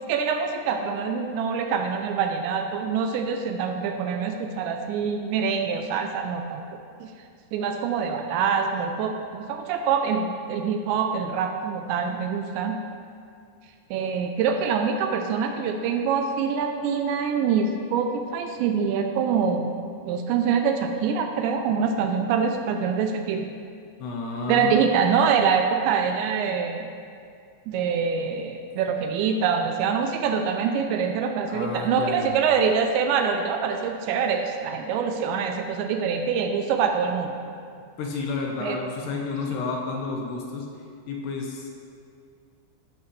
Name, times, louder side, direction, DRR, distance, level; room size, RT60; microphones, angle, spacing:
voice 1, 0.1-6.6 7.0-7.1 7.5-12.8 13.9-19.7 20.1-23.5 24.5-26.9 27.7-37.3 38.6-38.8, right 6 dB, 80° right, 5 dB, 2.8 m, -25 dB
voice 2, 24.0-24.7 31.5-32.3 38.0-40.7 41.1-41.7, left 4 dB, 70° left, 0 dB, 2.9 m, -30 dB
14.0 x 12.0 x 3.3 m, 2.3 s
omnidirectional pair, 5.4 m